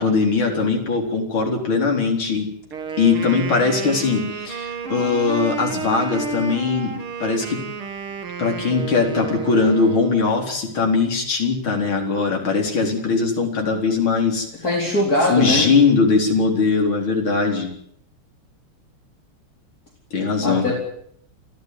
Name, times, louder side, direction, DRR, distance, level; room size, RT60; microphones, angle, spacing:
voice 1, 0.0-2.5 3.0-6.9 7.2-7.6 8.4-14.5 15.3-17.7 20.1-20.8, left 4 dB, 70° left, 1 dB, 5.0 m, -20 dB
Wind instrument woodwind instrument, 2.6-10.4, right 5 dB, 80° right, 3.0 m, -31 dB
voice 2, 14.6-15.7 20.4-20.8, left 1 dB, 45° left, -1 dB, 4.7 m, -20 dB
29.0 x 13.0 x 9.5 m, 0.68 s
omnidirectional pair, 2.3 m